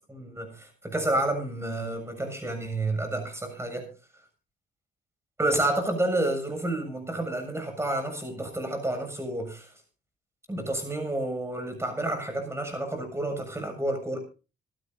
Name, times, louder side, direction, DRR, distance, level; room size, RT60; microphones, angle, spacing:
voice 1, 0.1-3.9 5.4-9.7 10.5-14.2, right 1 dB, 15° right, 5 dB, 7.2 m, -30 dB
26.5 x 12.5 x 2.8 m, 0.33 s
cardioid pair, 90°, 20 cm